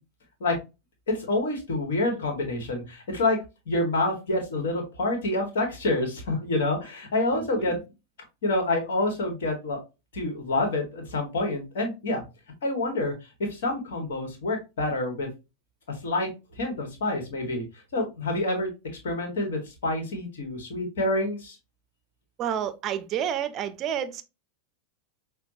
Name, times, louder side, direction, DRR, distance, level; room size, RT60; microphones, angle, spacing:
voice 1, 1.1-3.4 3.7-7.8 8.4-9.8 10.1-12.2 12.6-13.1 13.4-15.3 15.9-16.3 16.6-17.6 17.9-18.7 19.0-21.6, left 2 dB, 60° left, 1.4 m, -27 dB
voice 2, 7.3-7.8 22.4-24.2, right 9 dB, 35° right, 0.5 m, -30 dB
5.7 x 2.2 x 2.6 m
figure-of-eight pair, 90°, 0 cm